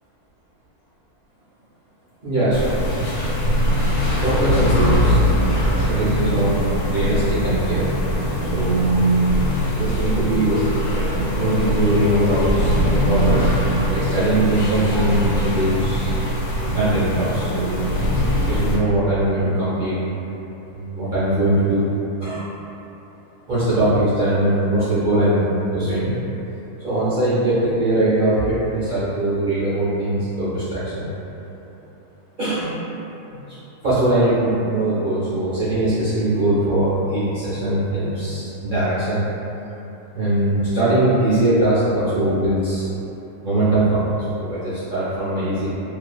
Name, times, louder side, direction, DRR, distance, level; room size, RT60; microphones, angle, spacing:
voice 1, 2.2-2.7 3.2-3.3 4.2-6.6 6.9-7.9 8.4-8.9 9.7-10.6 10.9-16.2 16.7-18.0 18.4-20.0 20.7-21.8 22.2-22.4 23.5-25.4 25.7-26.1 26.8-31.0 32.4-32.8 33.3-33.6 33.8-39.2 40.1-42.9 43.4-45.7, right 1 dB, 65° right, -12 dB, 0.5 m, -21 dB
sound 1, 2.5-18.8, equal, 85° left, 1.1 m, -21 dB
2.6 x 2.4 x 2.3 m, 3.0 s
omnidirectional pair, 1.7 m